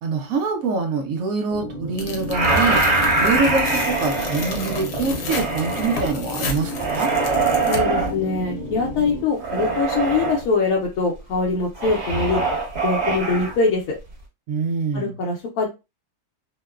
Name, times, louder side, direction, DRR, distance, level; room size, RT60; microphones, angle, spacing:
voice 1, 0.0-2.8 3.2-7.1 14.5-15.1, right 4 dB, 70° right, 1.0 m, -24 dB
sound 1, 1.5-9.2, left 1 dB, 85° right, 0.3 m, -32 dB
Tearing, 2.0-8.1, left 3 dB, 90° left, 1.2 m, -33 dB
sound 2, 2.3-6.1 6.7-8.1 9.4-10.4 11.8-13.5, right 3 dB, 45° right, 1.1 m, -23 dB
voice 2, 7.7-12.4 12.8-14.0 14.9-15.7, left 4 dB, 70° left, 1.0 m, -23 dB
2.9 x 2.1 x 2.3 m
omnidirectional pair, 1.7 m